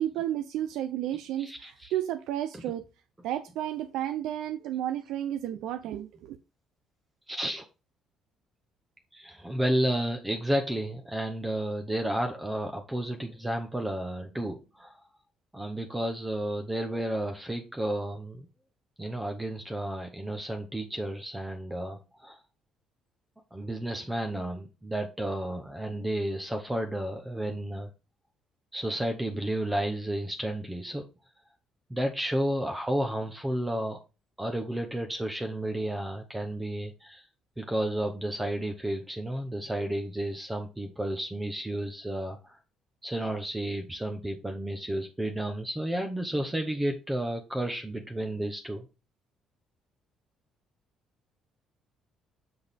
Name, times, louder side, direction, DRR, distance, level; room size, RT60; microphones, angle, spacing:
voice 1, 0.0-2.8 3.2-6.4, right 12 dB, 80° right, 0.6 m, -32 dB
voice 2, 1.4-1.9 2.5-2.6 7.3-7.6 9.1-15.0 15.5-18.4 19.0-22.4 23.5-27.9 28.7-31.1 31.9-34.0 34.4-37.3 37.6-42.6 43.0-48.8, right 1 dB, 10° right, 0.8 m, -32 dB
7.4 x 6.1 x 3.4 m
cardioid pair, 165°, 0 cm